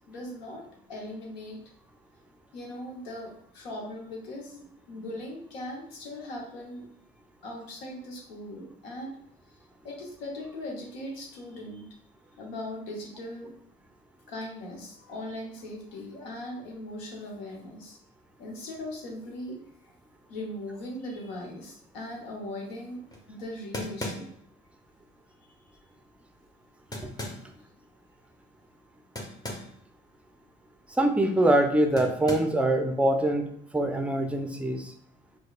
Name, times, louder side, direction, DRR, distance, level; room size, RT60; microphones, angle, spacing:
voice 1, 0.1-1.6 2.5-6.9 7.4-9.2 9.8-11.9 12.4-13.5 14.3-18.0 18.4-19.6 20.3-24.3, left 1 dB, 80° left, 0 dB, 0.9 m, -39 dB
sound 1, 23.1-23.2 23.7-24.5 26.9-27.5 29.2-29.8 30.1-30.2 32.0-32.6, left 1 dB, 15° left, 0.8 m, -37 dB
voice 2, 30.9-33.5 33.7-34.9, right 1 dB, 5° right, 5 dB, 0.5 m, -24 dB
4.6 x 2.2 x 2.3 m, 0.68 s
hypercardioid pair, 50°, 30 cm